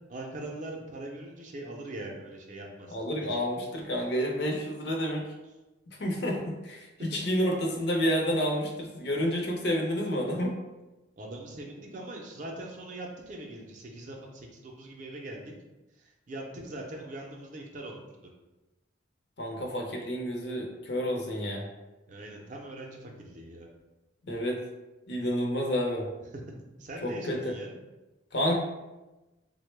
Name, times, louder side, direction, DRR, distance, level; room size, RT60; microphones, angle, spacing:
voice 1, 0.1-3.0 3.3-3.4 11.2-15.5 16.0-18.3 22.1-23.7 26.3-26.5 26.8-27.7, right 1 dB, 40° right, 1 dB, 0.5 m, -41 dB
voice 2, 2.9-5.3 6.0-10.5 19.4-21.6 24.3-24.6 25.1-26.1 27.0-27.5 28.3-28.6, equal, 60° left, 0 dB, 0.6 m, -29 dB
3.6 x 2.1 x 3.2 m, 1.1 s
head